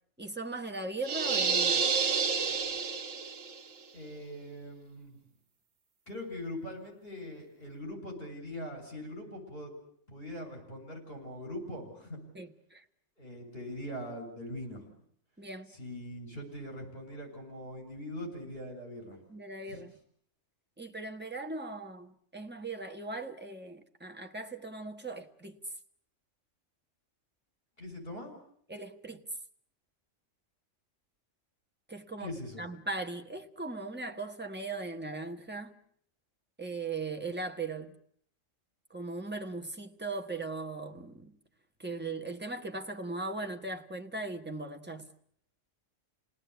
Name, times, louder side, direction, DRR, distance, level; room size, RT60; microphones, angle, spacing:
voice 1, 0.2-1.8 12.3-12.8 15.4-15.7 19.3-19.9 20.8-25.6 28.7-29.2 31.9-32.3 32.6-35.8 36.6-38.0 38.9-41.3 41.8-45.1, right 3 dB, 10° right, 1.5 m, -39 dB
sound 1, 1.0-3.6, right 5 dB, 85° right, 1.7 m, -29 dB
voice 2, 3.9-5.2 6.1-9.7 10.1-12.2 13.2-14.9 15.7-19.2 19.7-19.8 27.8-28.3 32.2-32.7, left 1 dB, 45° left, 7.4 m, -42 dB
29.5 x 18.5 x 8.1 m
omnidirectional pair, 1.3 m